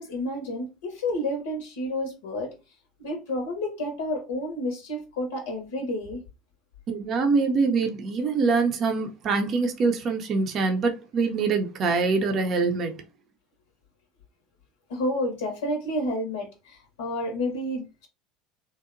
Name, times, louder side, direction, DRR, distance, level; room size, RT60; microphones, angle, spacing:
voice 1, 0.0-2.5 3.0-6.2 14.9-18.1, left 1 dB, 80° left, 0.6 m, -30 dB
voice 2, 6.9-13.0, right 4 dB, 45° right, 0.5 m, -24 dB
2.8 x 2.0 x 2.5 m
hypercardioid pair, 80°, 0 cm